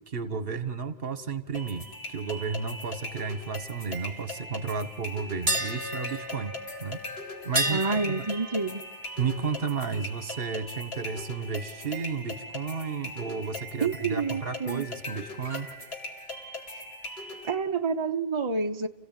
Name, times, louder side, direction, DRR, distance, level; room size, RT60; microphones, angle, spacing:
voice 1, 0.1-8.3 9.2-15.7, right 5 dB, 65° right, 11 dB, 1.5 m, -33 dB
sound 1, 1.5-17.5, left 1 dB, 75° left, 2.8 m, -40 dB
sound 2, 5.5-11.4 11.7-11.9 15.4-15.7, right 1 dB, 50° right, 2.5 m, -34 dB
voice 2, 7.7-8.8 13.8-14.9 16.7-16.9 17.4-18.9, right 4 dB, 30° right, 5 dB, 0.8 m, -29 dB
29.5 x 16.0 x 9.0 m, 1.2 s
omnidirectional pair, 1.0 m